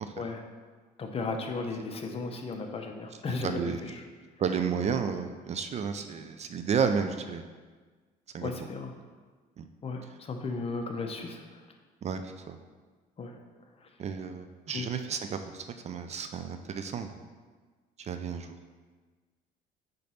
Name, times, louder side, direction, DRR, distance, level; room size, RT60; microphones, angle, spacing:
voice 1, 1.0-3.9 8.4-8.9 9.8-11.4 13.2-13.3 14.7-14.9, left 3 dB, 35° left, 4 dB, 0.8 m, -35 dB
voice 2, 3.4-3.8 4.4-7.4 8.3-8.5 9.6-9.7 12.0-12.6 14.0-17.1 18.0-18.5, right 6 dB, 40° right, 8 dB, 0.4 m, -32 dB
5.2 x 4.0 x 5.7 m, 1.4 s
cardioid pair, 110°, 17 cm